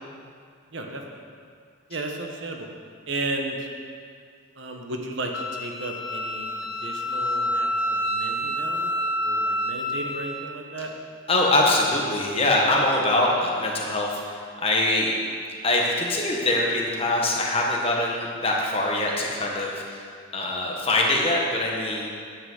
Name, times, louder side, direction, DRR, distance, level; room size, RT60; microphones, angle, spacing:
voice 1, 0.7-1.2 1.9-2.7 3.1-3.7 4.6-6.5 6.8-8.9 9.2-10.9, right 2 dB, 65° right, 2 dB, 1.2 m, -34 dB
Wind instrument woodwind instrument, 5.3-10.5, equal, 85° left, 1.1 m, -28 dB
voice 2, 11.3-15.1 15.6-20.0 20.3-22.1, left 2 dB, 30° left, -2 dB, 1.4 m, -23 dB
10.0 x 6.0 x 7.9 m, 2.2 s
head